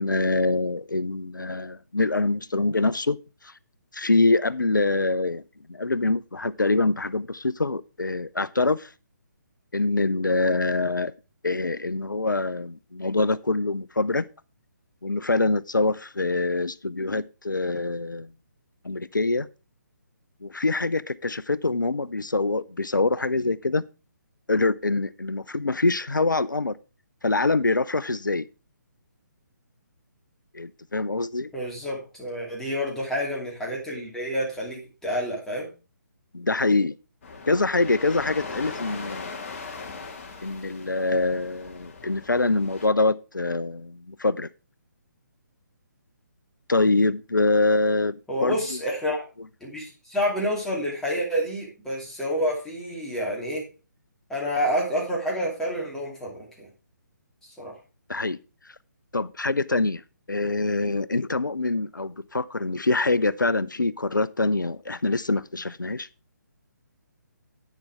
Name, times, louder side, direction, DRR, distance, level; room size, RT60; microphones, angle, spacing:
voice 1, 0.0-3.2 3.4-3.5 3.9-5.4 5.7-8.9 9.7-11.1 11.4-14.3 15.0-18.3 18.8-19.5 20.4-23.8 24.5-26.7 27.2-28.5 30.5-31.5 36.3-36.9 37.5-39.4 40.4-44.5 46.7-48.8 58.1-58.4 59.1-60.0 60.3-66.1, left 3 dB, 90° left, 0.5 m, -24 dB
voice 2, 31.5-35.7 48.3-49.2 49.6-53.6 54.3-56.7 57.4-57.8, equal, 5° left, 2.7 m, -28 dB
sound 1, 37.2-42.9, left 4 dB, 40° left, 1.7 m, -39 dB
10.5 x 9.0 x 3.4 m
figure-of-eight pair, 145°, 10 cm